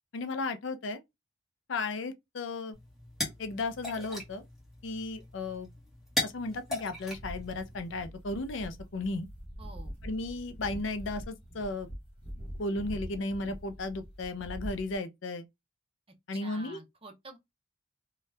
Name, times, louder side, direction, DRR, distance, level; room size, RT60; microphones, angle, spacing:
voice 1, 0.1-1.0 1.7-2.7 3.4-4.4 4.8-5.7 6.2-9.3 10.0-11.9 12.6-15.5 16.3-16.8, left 2 dB, 70° left, 0.5 m, -35 dB
sound 1, 2.7-8.0, left 1 dB, ahead, 1.1 m, -38 dB
sound 2, 7.1-15.0, equal, 30° left, 1.1 m, -44 dB
voice 2, 9.6-9.9 16.3-17.4, right 3 dB, 30° right, 0.6 m, -48 dB
2.7 x 2.3 x 3.2 m
head